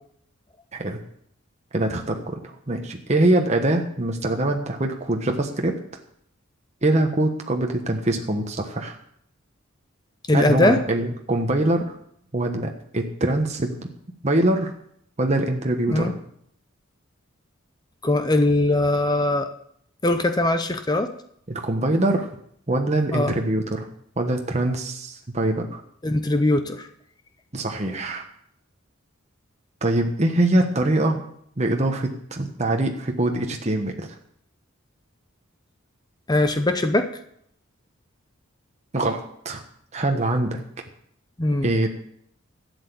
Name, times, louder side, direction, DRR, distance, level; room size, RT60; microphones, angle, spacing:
voice 1, 1.7-5.8 6.8-9.0 10.3-11.9 12.3-13.8 14.2-14.7 15.2-16.1 21.5-22.3 22.7-23.9 24.2-25.8 27.5-28.3 29.8-31.2 31.6-34.1 38.9-39.6 39.9-40.6 41.6-41.9, right 1 dB, 30° right, 3 dB, 1.2 m, -23 dB
voice 2, 10.3-10.8 15.9-16.1 18.0-19.5 20.0-21.1 23.1-23.3 26.0-26.9 36.3-37.1 41.4-41.7, left 2 dB, 20° left, 8 dB, 0.7 m, -21 dB
12.0 x 8.2 x 6.9 m, 0.69 s
head